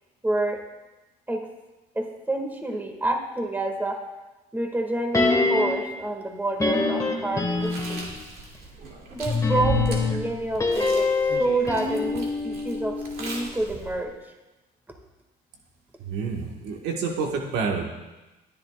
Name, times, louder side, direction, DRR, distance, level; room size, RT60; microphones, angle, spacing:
voice 1, 0.2-0.6 1.3-1.5 1.9-4.0 4.5-8.0 9.1-14.1, right 2 dB, 10° right, 2 dB, 2.0 m, -28 dB
sound 1, 5.1-6.0 6.6-8.2 9.3-13.5 13.8-13.9, left 3 dB, 20° left, 1.8 m, -25 dB
Chewing mastication, 7.5-14.0, right 3 dB, 60° right, 2.6 m, -36 dB
voice 2, 16.0-17.8, right 5 dB, 90° right, 1 dB, 1.6 m, -28 dB
21.5 x 10.5 x 2.4 m, 1.1 s
cardioid pair, 110°, 17 cm